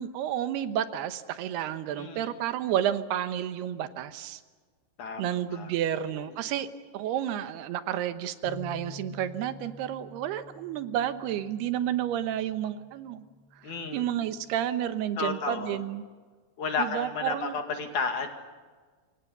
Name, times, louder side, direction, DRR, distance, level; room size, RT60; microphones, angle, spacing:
voice 1, 0.0-4.4 5.2-6.7 6.9-13.2 13.6-16.0 16.8-17.6, right 10 dB, 85° right, 11 dB, 3.2 m, -31 dB
voice 2, 2.0-2.4 5.0-5.7 13.6-14.0 15.2-15.8 16.6-18.3, left 4 dB, 55° left, 5 dB, 3.3 m, -32 dB
sound 1, 8.4-14.7, left 2 dB, 75° left, 0.5 m, -49 dB
26.0 x 24.0 x 6.8 m, 1.5 s
omnidirectional pair, 4.5 m